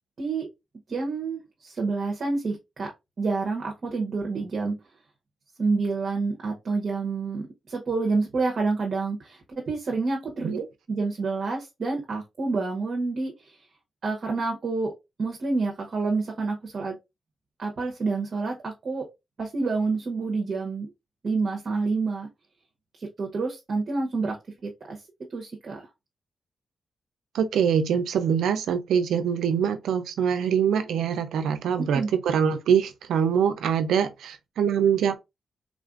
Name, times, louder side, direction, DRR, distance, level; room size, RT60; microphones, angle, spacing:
voice 1, 0.9-2.9 3.2-4.8 5.6-10.6 10.9-13.6 14.0-14.9 15.2-16.9 17.6-19.0 19.4-20.9 21.2-22.3 23.0-24.4 24.6-25.0 25.3-25.8 31.9-32.1, right 3 dB, 60° right, 0.9 m, -28 dB
voice 2, 27.3-35.2, right 7 dB, 90° right, 0.5 m, -24 dB
3.7 x 2.4 x 2.4 m
cardioid pair, 70°, 0 cm